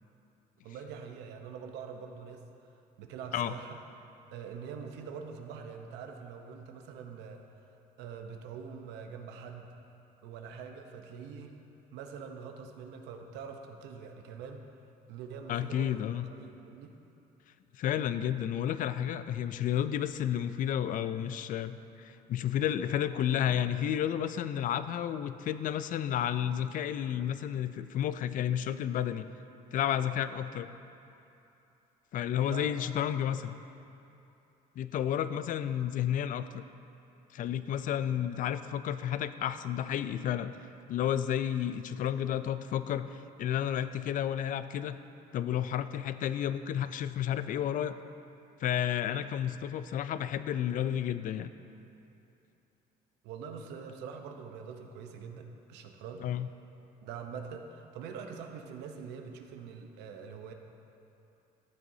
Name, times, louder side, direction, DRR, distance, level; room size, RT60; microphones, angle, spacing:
voice 1, 0.6-2.4 3.0-3.8 4.3-7.5 8.0-9.7 10.2-11.6 11.9-14.6 15.1-16.0 16.4-17.0 32.5-32.7 53.2-56.2 57.0-60.5, right 6 dB, 90° right, 4 dB, 0.8 m, -44 dB
voice 2, 15.5-16.3 17.7-29.3 29.7-30.7 32.1-33.5 34.8-36.6 37.3-40.5 40.9-45.0 45.3-48.0 48.6-51.5 56.2-56.5, left 10 dB, 50° left, 12 dB, 0.4 m, -31 dB
14.0 x 7.4 x 2.7 m, 2.8 s
cardioid pair, 110°, 17 cm